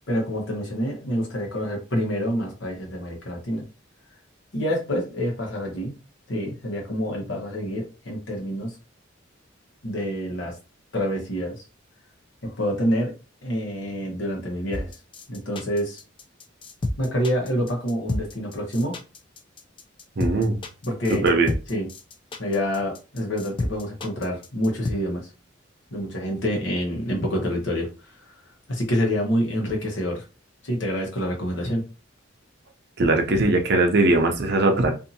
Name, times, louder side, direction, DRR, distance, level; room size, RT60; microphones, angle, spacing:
voice 1, 0.1-3.6 4.5-5.9 6.3-8.7 9.8-10.6 10.9-11.6 12.4-13.1 13.4-14.9 15.3-16.0 17.0-19.0 20.8-21.3 21.7-21.9 22.4-25.3 25.9-27.9 28.7-30.2 30.6-31.8, equal, 70° left, -1 dB, 1.1 m, -27 dB
sound 1, 14.7-24.9, left 2 dB, 25° left, 0.3 m, -30 dB
voice 2, 20.2-20.6 21.2-21.5 33.0-34.9, right 2 dB, 55° right, 4 dB, 0.6 m, -20 dB
2.6 x 2.6 x 2.7 m, 0.32 s
head